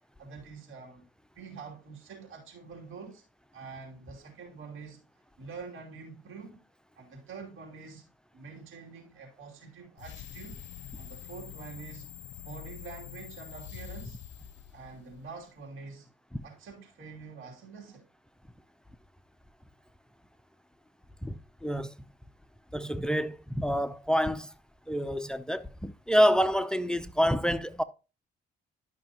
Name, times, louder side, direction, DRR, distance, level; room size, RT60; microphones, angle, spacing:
voice 1, 0.2-1.1 1.3-3.2 3.5-5.0 5.4-6.6 6.9-10.6 11.0-12.1 12.4-14.2 14.7-16.1 16.4-18.1, right 5 dB, 85° right, 2.9 m, -46 dB
sound 1, 10.0-15.4, left 10 dB, 65° left, 0.6 m, -45 dB
voice 2, 21.2-21.9 22.7-24.5 24.9-27.8, equal, 5° left, 0.6 m, -27 dB
11.5 x 5.8 x 2.9 m
cardioid pair, 90°, 20 cm